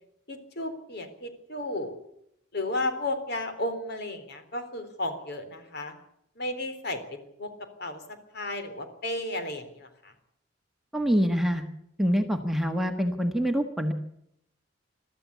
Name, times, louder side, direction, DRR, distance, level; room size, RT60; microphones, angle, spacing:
voice 1, 0.3-1.9 2.5-5.9 6.4-7.5 7.8-8.0 8.3-9.9, left 1 dB, 55° left, 7 dB, 3.7 m, -33 dB
voice 2, 10.9-11.6 12.0-13.9, equal, ahead, 4 dB, 1.5 m, -25 dB
22.5 x 14.0 x 8.3 m, 0.75 s
head